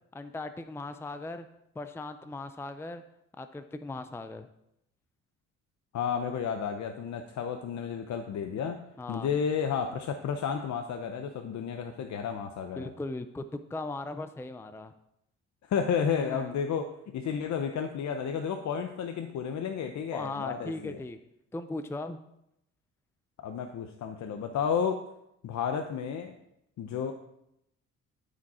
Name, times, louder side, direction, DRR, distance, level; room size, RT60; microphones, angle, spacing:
voice 1, 0.1-1.5 1.8-3.0 3.4-4.5 9.0-9.3 12.8-14.9 16.2-16.5 20.1-21.2 21.5-22.2, left 2 dB, 10° left, 9 dB, 0.5 m, -38 dB
voice 2, 5.9-8.8 9.1-12.9 15.7-21.0 23.4-25.0 25.4-26.4 26.8-27.1, left 7 dB, 65° left, 5 dB, 0.8 m, -32 dB
13.0 x 5.2 x 4.3 m, 0.81 s
cardioid pair, 90°, 30 cm